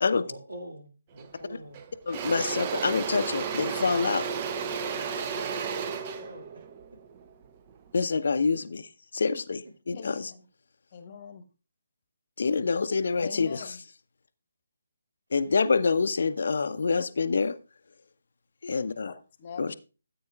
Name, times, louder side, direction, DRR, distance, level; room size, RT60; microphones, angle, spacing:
voice 1, 0.2-1.8 4.8-5.5 5.9-6.5, right 1 dB, 70° right, 4 dB, 2.3 m, -45 dB
Engine / Drill, 1.2-1.4 1.7-7.9, right 6 dB, 25° right, 0.6 m, -33 dB
voice 2, 2.1-4.2 7.9-10.3 12.4-13.6 15.3-17.5 18.6-19.1 19.6-19.7, left 4 dB, 55° left, 12 dB, 0.6 m, -26 dB
voice 3, 9.9-10.5 10.9-11.4 13.1-13.8 18.8-19.8, left 6 dB, 35° left, 10 dB, 1.0 m, -43 dB
14.0 x 8.5 x 2.3 m, 0.32 s
figure-of-eight pair, 145°, 0 cm